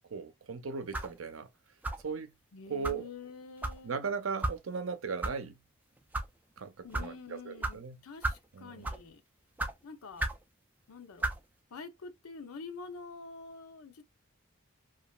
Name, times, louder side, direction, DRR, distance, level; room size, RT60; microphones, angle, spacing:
voice 1, 0.1-1.5 2.0-2.3 2.7-3.0 3.8-5.6 6.6-8.0 8.5-8.8, right 5 dB, 70° right, 0.6 m, -37 dB
sound 1, 0.9-1.2 1.8-2.1 2.8-3.0 3.6-3.8 4.4-4.6 5.2-5.3 6.0-6.3 6.9-7.1 7.6-7.8 8.2-8.5 8.8-9.1 9.6-9.7 10.2-10.4 11.2-11.4, right 2 dB, 10° right, 0.3 m, -33 dB
voice 2, 2.5-4.1 6.8-9.2 9.8-10.3 10.9-11.3 11.7-14.0, left 4 dB, 90° left, 0.6 m, -47 dB
2.9 x 2.4 x 2.2 m
head